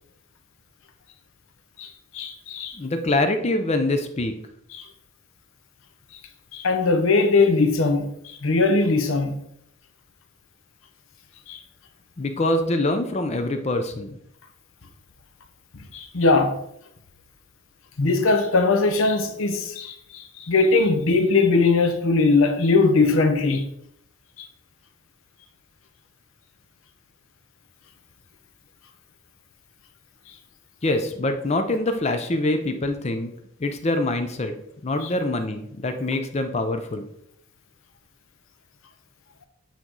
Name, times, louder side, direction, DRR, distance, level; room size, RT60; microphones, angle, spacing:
voice 1, 1.8-2.8 4.7-4.8 6.5-9.4 11.5-11.6 15.9-16.6 18.0-23.6 24.4-24.5 35.0-35.1, left 3 dB, 65° left, 0.7 m, -20 dB
voice 2, 2.7-4.3 12.2-14.2 30.8-33.3 33.6-34.5 34.8-37.1, left 2 dB, 30° left, 0.4 m, -24 dB
8.3 x 3.0 x 3.9 m
head